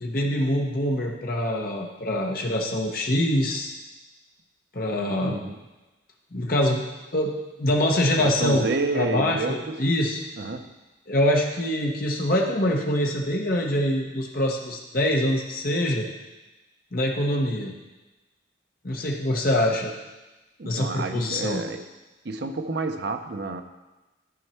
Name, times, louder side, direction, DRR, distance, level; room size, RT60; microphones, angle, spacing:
voice 1, 0.0-3.7 4.7-5.4 6.3-6.8 7.1-7.3 7.6-8.7 8.9-10.2 11.1-16.1 16.9-17.7 18.8-19.9 20.6-21.6, left 1 dB, 50° left, 0 dB, 1.0 m, -24 dB
voice 2, 5.2-5.6 8.1-9.8 10.4-10.7 20.6-21.9 22.2-23.6, right 3 dB, 55° right, 7 dB, 0.6 m, -29 dB
12.0 x 4.5 x 4.4 m, 1.1 s
head